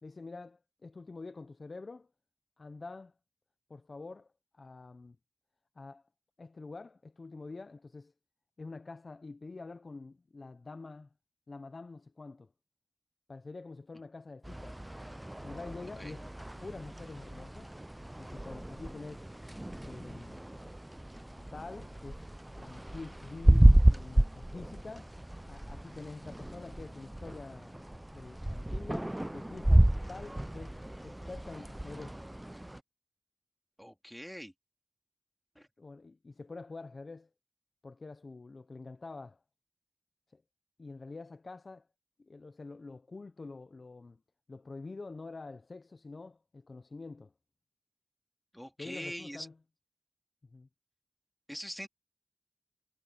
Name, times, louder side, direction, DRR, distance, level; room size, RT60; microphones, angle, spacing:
voice 1, 0.0-2.1 2.6-3.1 3.7-5.2 5.8-6.0 6.4-8.1 8.6-11.1 11.5-12.5 13.3-14.8 15.4-16.3 16.6-17.7 18.2-19.3 19.8-20.4 21.3-22.2 22.6-30.8 31.0-32.2 35.8-37.3 37.8-39.4 40.3-40.4 40.8-41.9 42.2-44.2 44.5-47.3 48.8-49.6 50.4-50.7, left 3 dB, 80° left, 0.6 m, -46 dB
sound 1, 14.4-32.8, right 1 dB, 20° right, 0.4 m, -30 dB
voice 2, 33.8-34.5 35.6-35.7 48.5-49.5 51.5-51.9, equal, 5° left, 2.6 m, -43 dB
wide cardioid pair, 45°, 0 cm